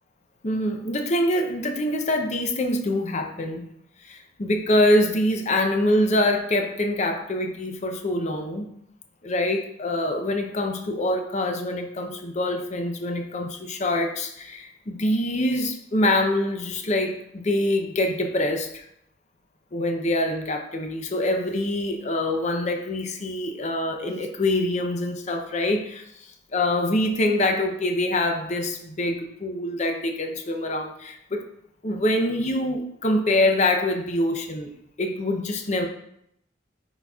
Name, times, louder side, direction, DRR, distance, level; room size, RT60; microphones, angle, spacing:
voice 1, 0.4-3.6 4.0-8.7 9.2-18.8 19.7-31.5 31.8-34.7 35.0-35.9, left 1 dB, 40° left, 4 dB, 0.6 m, -25 dB
9.9 x 4.0 x 2.3 m, 0.75 s
head